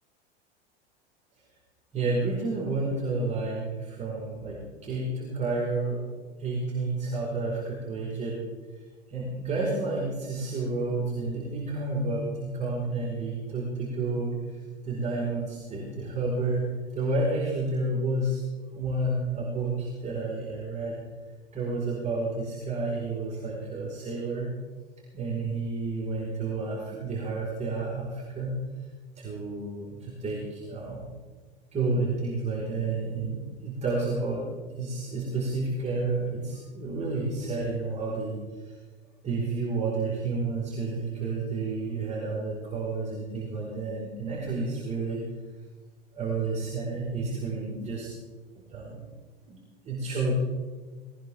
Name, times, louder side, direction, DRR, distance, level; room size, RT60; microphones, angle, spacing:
voice 1, 1.9-6.0 6.4-8.4 9.1-14.6 14.8-16.7 16.9-21.0 21.5-24.5 25.1-28.6 29.2-31.1 31.7-38.8 39.2-45.2 46.1-48.1 48.7-49.1 49.4-49.6 49.8-50.3, right 3 dB, 20° right, -5 dB, 5.0 m, -30 dB
20.0 x 19.5 x 3.7 m, 1.4 s
figure-of-eight pair, 85°, 31 cm